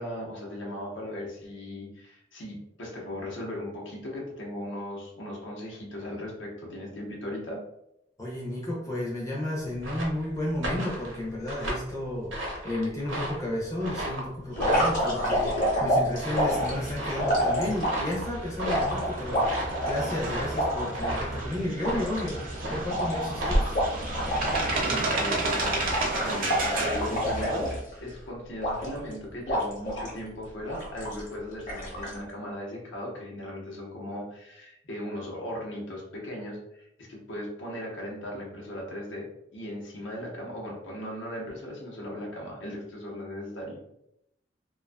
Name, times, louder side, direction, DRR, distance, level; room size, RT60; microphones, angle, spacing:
voice 1, 0.0-7.6 24.6-27.7 28.0-43.8, left 1 dB, 70° left, -3 dB, 0.8 m, -37 dB
voice 2, 8.2-22.4 22.7-23.8, left 1 dB, 15° left, -4 dB, 0.5 m, -32 dB
sound 1, 9.6-24.9, right 1 dB, 80° right, 0.7 m, -34 dB
sound 2, 14.5-18.1 18.6-21.2 21.5-21.6 21.8-24.8 25.0-25.3 25.6-28.1 28.6-29.1 29.5-30.2 30.7-31.3 31.7-32.2, equal, 45° left, 0.9 m, -28 dB
sound 3, 16.3-27.8, right 2 dB, 45° right, 0.5 m, -33 dB
2.5 x 2.3 x 2.2 m, 0.80 s
head